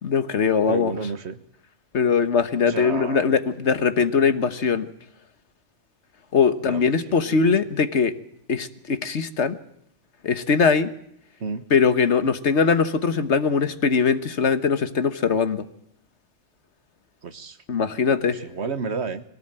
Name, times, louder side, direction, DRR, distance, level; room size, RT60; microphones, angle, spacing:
voice 1, 0.0-0.9 1.9-4.9 6.3-8.1 8.5-9.6 10.2-10.9 11.7-15.7 17.7-18.4, left 5 dB, 70° left, 11 dB, 1.5 m, -21 dB
voice 2, 0.7-1.4 2.6-3.3 6.7-7.5 11.4-11.7 17.2-17.6 18.3-19.2, right 4 dB, 65° right, 11 dB, 1.5 m, -31 dB
23.0 x 18.0 x 8.9 m, 0.70 s
omnidirectional pair, 1.2 m